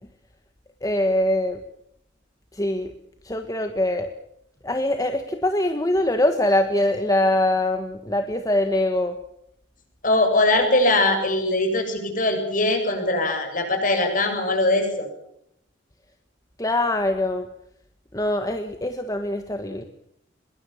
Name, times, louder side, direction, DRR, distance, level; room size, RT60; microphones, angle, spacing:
voice 1, 0.8-1.6 2.5-2.9 3.2-4.1 4.6-9.2 16.6-17.5 18.1-19.8, left 1 dB, 20° left, 7 dB, 1.5 m, -23 dB
voice 2, 10.0-15.1, left 2 dB, 45° left, 6 dB, 7.8 m, -21 dB
24.5 x 22.5 x 7.3 m, 0.74 s
head